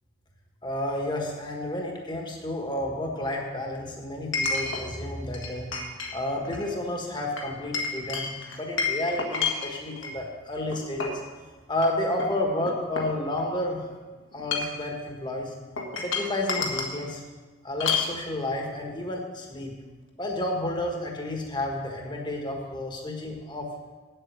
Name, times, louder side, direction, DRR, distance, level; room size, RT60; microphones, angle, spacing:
voice 1, 0.6-5.7 6.1-8.3 8.5-11.2 11.7-13.9 14.3-15.5 16.0-17.2 17.6-19.7 20.2-23.7, left 1 dB, 25° left, 1 dB, 1.4 m, -31 dB
Chink clink, 0.9-1.0 4.3-4.8 5.3-6.1 6.4-6.7 7.4-10.1 10.7-11.2 11.7-11.9 12.2-13.6 14.3-14.9 15.8-17.0 17.8-18.1, left 4 dB, 75° left, 1.6 m, -30 dB
8.6 x 8.0 x 6.7 m, 1.3 s
head